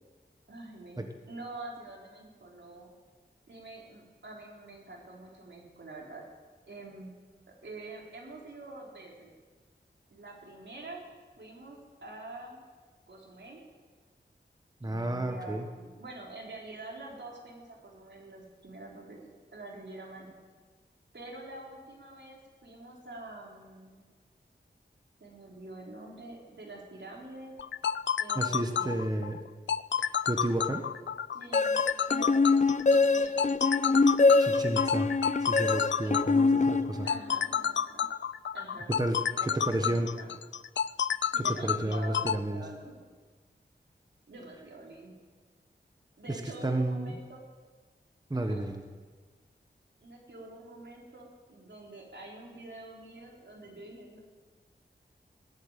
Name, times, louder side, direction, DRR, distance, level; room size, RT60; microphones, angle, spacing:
voice 1, 0.5-2.9 3.5-6.2 6.7-7.2 7.6-9.3 10.1-11.0 11.4-12.6 13.1-13.6 14.8-19.2 19.5-20.3 21.1-24.1 25.2-27.5 28.2-29.1 31.3-32.5 32.9-34.0 36.0-36.6 37.0-38.1 38.5-38.9 39.4-40.3 41.3-43.1 44.3-45.1 46.2-47.4 48.3-48.6 50.0-54.2, right 2 dB, 80° right, -2 dB, 3.8 m, -46 dB
voice 2, 14.8-15.7 28.3-29.4 30.0-30.8 34.4-35.1 35.4-37.1 39.0-40.1 41.3-42.6 46.3-47.1 48.3-48.8, right 1 dB, 20° right, 4 dB, 1.2 m, -32 dB
sound 1, 27.6-42.4, left 8 dB, 85° left, 0.4 m, -30 dB
sound 2, 31.5-37.4, left 3 dB, 40° left, 0.6 m, -25 dB
19.5 x 8.1 x 9.0 m, 1.5 s
wide cardioid pair, 90°, 18 cm